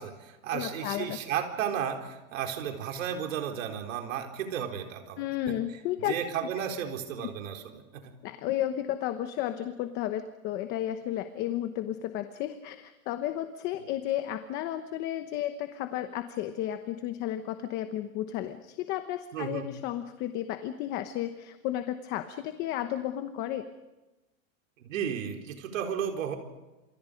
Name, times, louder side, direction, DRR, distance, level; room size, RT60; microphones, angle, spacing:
voice 1, 0.0-5.2 6.0-8.0 19.3-19.7 24.8-26.4, right 8 dB, 70° right, 3 dB, 4.3 m, -33 dB
voice 2, 0.5-1.2 5.2-6.1 7.2-7.3 8.2-23.7, left 12 dB, 25° left, 9 dB, 1.0 m, -33 dB
29.5 x 27.5 x 5.2 m, 1.1 s
supercardioid pair, 170°, 40 cm